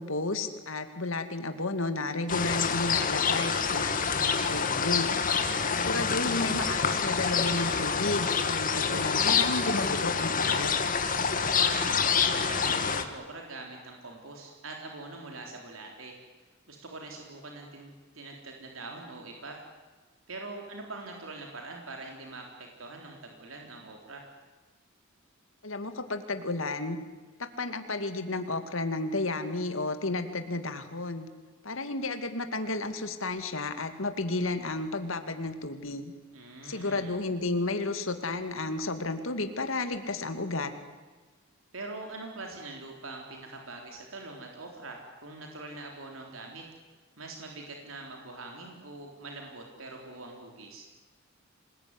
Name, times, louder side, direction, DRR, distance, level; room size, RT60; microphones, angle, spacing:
voice 1, 0.0-5.1 5.8-10.7 25.6-27.0 27.4-31.3 31.6-36.1 36.6-40.7, left 2 dB, 75° left, 8 dB, 2.3 m, -32 dB
sound 1, 2.3-13.0, left 6 dB, 45° left, 2.2 m, -27 dB
voice 2, 5.2-5.8 11.4-16.1 16.7-19.6 20.3-24.3 36.3-37.1 41.7-46.7 47.2-50.9, right 2 dB, 80° right, 1 dB, 3.9 m, -43 dB
27.0 x 20.5 x 9.8 m, 1.3 s
head